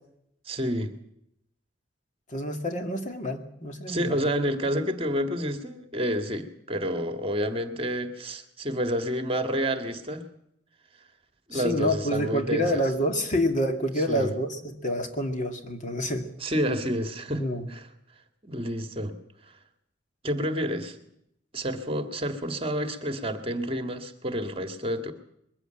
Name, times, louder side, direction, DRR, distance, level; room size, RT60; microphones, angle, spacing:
voice 1, 0.5-0.9 3.9-10.3 11.5-12.8 14.1-14.3 16.4-17.9 18.5-19.2 19.5-19.6 20.2-21.0 21.5-25.1, equal, 30° right, 8 dB, 1.8 m, -29 dB
voice 2, 2.3-4.2 11.5-16.3 17.3-17.7, equal, 45° left, 5 dB, 2.3 m, -28 dB
21.5 x 15.0 x 9.0 m, 0.76 s
head